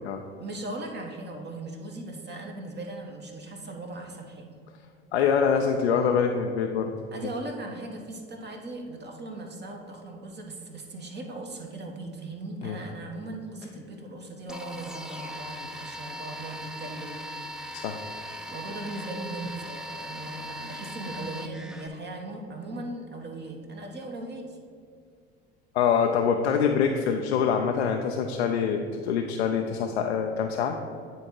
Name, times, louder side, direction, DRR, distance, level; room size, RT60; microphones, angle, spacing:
voice 1, 0.4-4.5 7.1-17.2 18.5-24.6, right 2 dB, 35° right, 1 dB, 1.2 m, -38 dB
voice 2, 5.1-6.9 12.6-12.8 17.7-18.0 25.7-30.8, left 6 dB, 85° left, 3 dB, 0.5 m, -25 dB
sound 1, 14.5-21.9, equal, ahead, 0.5 m, -39 dB
9.0 x 3.6 x 4.5 m, 2.3 s
hypercardioid pair, 65°, 32 cm